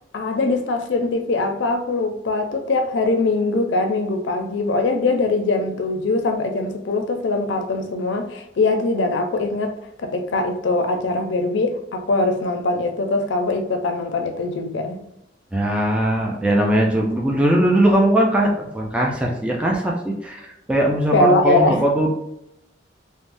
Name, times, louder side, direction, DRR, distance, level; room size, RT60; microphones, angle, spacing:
voice 1, 0.1-9.7 10.0-15.0 21.1-21.9, left 2 dB, 75° left, 5 dB, 0.4 m, -22 dB
voice 2, 15.5-22.1, right 1 dB, 5° right, -2 dB, 0.3 m, -20 dB
3.3 x 2.0 x 2.5 m, 0.83 s
head